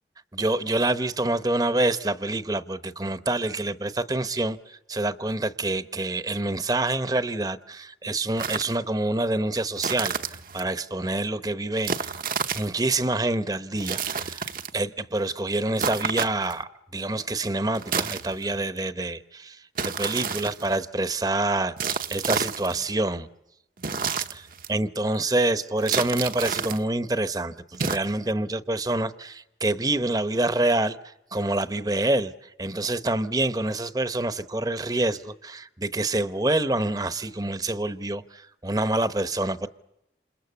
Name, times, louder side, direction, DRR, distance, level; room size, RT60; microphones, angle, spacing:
voice 1, 0.3-12.1 12.5-23.3 24.3-39.7, right 2 dB, 20° right, 0.9 m, -27 dB
sound 1, 8.4-8.8 9.8-10.7 11.8-12.8 13.8-14.8 15.8-16.6 17.7-18.6 19.8-20.8 21.8-22.8 23.8-24.7 25.8-26.8 27.7-28.0, right 6 dB, 50° right, 1.0 m, -30 dB
28.5 x 28.0 x 7.0 m
head